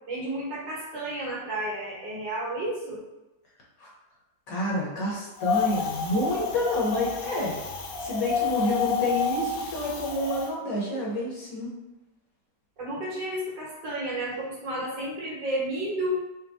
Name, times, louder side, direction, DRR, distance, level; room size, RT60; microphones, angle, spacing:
voice 1, 0.1-3.0 12.8-16.2, right 1 dB, 80° right, -6 dB, 2.0 m, -31 dB
voice 2, 4.5-7.5 8.0-11.7, left 1 dB, 55° left, -4 dB, 1.3 m, -28 dB
Wind, 5.4-10.5, left 5 dB, 80° left, 1.3 m, -29 dB
5.1 x 2.2 x 3.4 m, 1.0 s
omnidirectional pair, 1.9 m